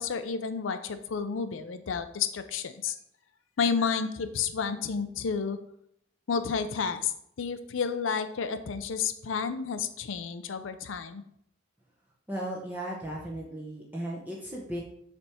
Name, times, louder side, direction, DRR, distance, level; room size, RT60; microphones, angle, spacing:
voice 1, 0.0-2.9 3.6-5.6 6.3-7.1 7.4-11.2, left 6 dB, 80° left, 10 dB, 0.5 m, -31 dB
voice 2, 12.3-14.8, right 1 dB, 10° right, -4 dB, 0.8 m, -36 dB
6.7 x 3.5 x 4.3 m, 0.70 s
head